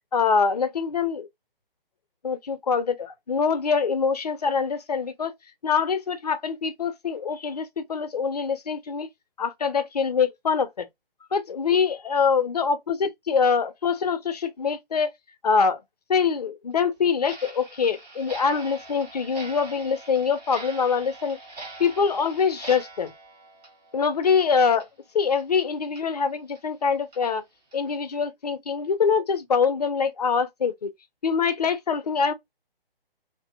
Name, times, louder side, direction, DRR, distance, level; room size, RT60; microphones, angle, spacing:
voice 1, 0.1-1.3 2.2-5.3 5.6-9.1 9.4-10.9 11.3-15.1 15.4-15.8 16.1-21.4 21.8-23.1 23.9-24.9 25.1-27.4 27.7-30.9 31.2-32.3, left 5 dB, 45° left, 0.4 m, -24 dB
Clock, 17.2-24.4 24.7-24.9 25.4-25.5 26.0-26.1 26.5-26.6 27.1-27.2 27.7-27.9, right 2 dB, 40° right, 1.2 m, -43 dB
2.5 x 2.5 x 2.3 m
figure-of-eight pair, 140°, 30 cm